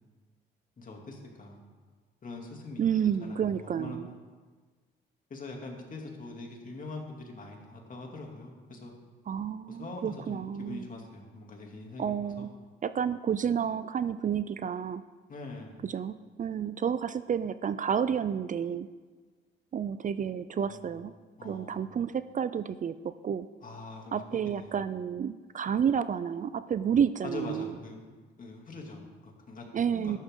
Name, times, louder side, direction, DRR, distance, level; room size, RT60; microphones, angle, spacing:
voice 1, 0.8-1.6 2.2-4.0 5.3-8.9 9.7-12.5 15.3-15.8 20.6-21.0 21.4-21.9 23.6-24.9 27.2-29.6 29.9-30.2, left 2 dB, 40° left, 0 dB, 2.7 m, -43 dB
voice 2, 2.8-4.1 9.3-10.8 12.0-12.5 12.8-15.0 15.8-18.9 19.7-21.1 21.4-23.5 24.1-27.7 29.7-30.2, right 8 dB, 40° right, 13 dB, 0.5 m, -30 dB
13.0 x 12.0 x 3.8 m, 1.4 s
cardioid pair, 90°, 20 cm